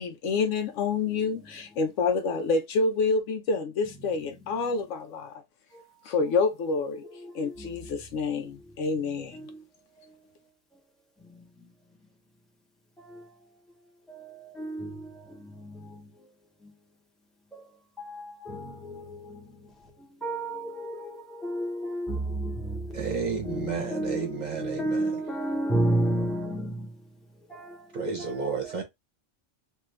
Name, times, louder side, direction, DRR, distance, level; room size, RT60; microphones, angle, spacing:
voice 1, 0.0-5.3 6.1-7.0 7.3-9.4, left 4 dB, 85° left, 1.0 m, -28 dB
voice 2, 14.6-14.9 17.5-17.6 18.5-19.0 20.2-21.1 21.4-22.5 23.5-24.3 24.5-26.7 27.6-27.7 28.2-28.5, right 1 dB, ahead, 0.8 m, -29 dB
voice 3, 22.9-25.1 27.9-28.8, right 5 dB, 40° right, 0.8 m, -32 dB
2.6 x 2.5 x 3.2 m
omnidirectional pair, 1.3 m